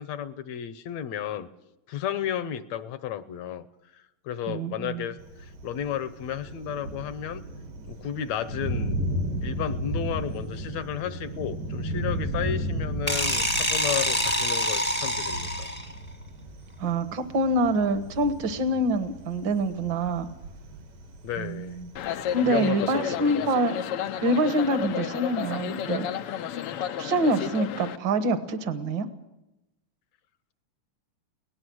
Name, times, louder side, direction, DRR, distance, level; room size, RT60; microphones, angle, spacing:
voice 1, 0.0-1.5 1.9-3.6 3.9-7.4 7.9-9.0 9.4-15.7 21.2-21.8 22.4-23.5, left 9 dB, 70° left, 13 dB, 1.8 m, -33 dB
voice 2, 4.5-5.1 16.8-20.3 21.4-21.9 22.3-23.8 24.2-26.1 27.0-29.1, right 1 dB, 55° right, 10 dB, 1.4 m, -26 dB
Thunder, 5.2-22.7, right 1 dB, 80° right, 4.3 m, -35 dB
sound 1, 13.1-16.0, equal, 10° left, 0.6 m, -26 dB
sound 2, 22.0-28.0, left 9 dB, 90° left, 1.2 m, -32 dB
23.0 x 18.0 x 6.2 m, 0.92 s
omnidirectional pair, 3.7 m